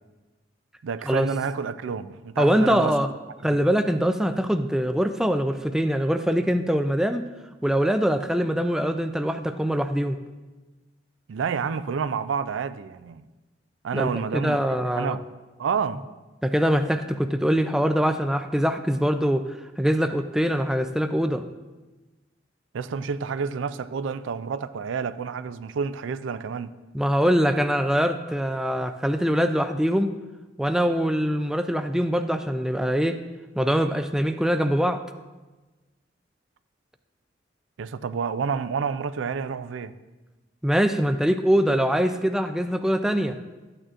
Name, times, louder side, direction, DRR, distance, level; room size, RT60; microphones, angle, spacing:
voice 1, 0.8-3.0 3.4-3.6 11.3-13.2 13.8-15.2 15.6-16.0 22.7-26.7 37.8-39.9, right 6 dB, 80° right, 0.4 m, -29 dB
voice 2, 2.4-3.1 3.4-7.3 7.6-10.2 13.9-15.2 16.4-21.5 26.9-30.1 30.6-33.2 33.6-35.0 40.6-43.4, equal, 5° right, 0.3 m, -23 dB
13.5 x 8.8 x 2.5 m
head